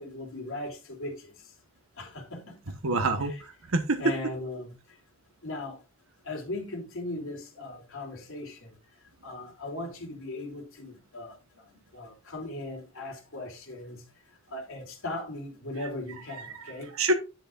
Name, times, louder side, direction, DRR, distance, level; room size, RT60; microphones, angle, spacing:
voice 1, 0.0-1.3 2.0-2.7 3.2-3.4 4.0-4.7 5.4-5.8 6.2-8.7 9.2-11.4 11.9-14.0 14.5-16.9, left 2 dB, 75° left, 2.9 m, -38 dB
voice 2, 2.8-4.0 15.8-15.9 16.3-17.1, right 2 dB, 85° right, 1.1 m, -28 dB
10.5 x 8.2 x 2.5 m
head